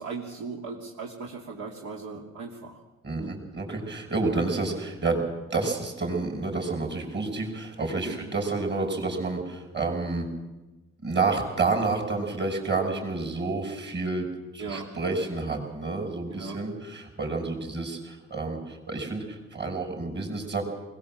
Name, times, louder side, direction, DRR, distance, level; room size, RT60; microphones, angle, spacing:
voice 1, 0.0-2.8 3.1-3.4 8.0-8.2 14.6-14.9 16.3-16.6, right 4 dB, 70° right, -2 dB, 3.0 m, -38 dB
voice 2, 3.0-5.2 5.5-10.3 11.0-14.3 14.5-20.7, right 3 dB, 35° right, 3 dB, 5.9 m, -29 dB
21.0 x 19.0 x 7.6 m, 1.1 s
cardioid pair, 90°, 30 cm